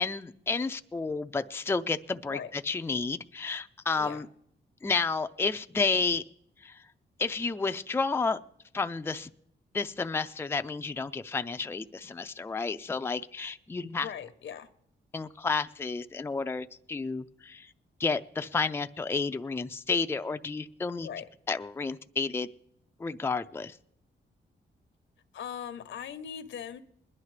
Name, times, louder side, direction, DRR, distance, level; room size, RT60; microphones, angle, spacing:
voice 1, 0.0-4.3 4.8-6.2 6.6-6.8 7.2-8.4 8.7-9.3 9.7-14.1 15.1-17.7 18.0-21.1 21.5-22.5 23.0-23.8, left 4 dB, 10° left, 8 dB, 0.4 m, -31 dB
voice 2, 14.0-14.7 21.0-21.3 25.3-26.8, left 8 dB, 80° left, 10 dB, 0.9 m, -40 dB
20.5 x 11.0 x 3.3 m, 0.71 s
cardioid pair, 90°, 20 cm